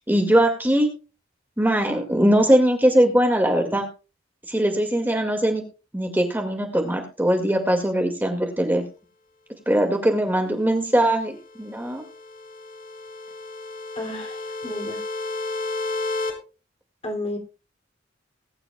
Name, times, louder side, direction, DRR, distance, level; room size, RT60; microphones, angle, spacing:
voice 1, 0.1-0.9 1.6-3.9 4.5-5.6 5.9-8.8 9.7-12.0, right 1 dB, 10° right, 3 dB, 2.1 m, -21 dB
sound 1, 11.4-16.3, left 2 dB, 45° left, 4.1 m, -32 dB
voice 2, 14.0-15.0 17.0-17.4, left 1 dB, 30° left, 4 dB, 2.8 m, -32 dB
20.5 x 10.5 x 2.3 m, 0.32 s
head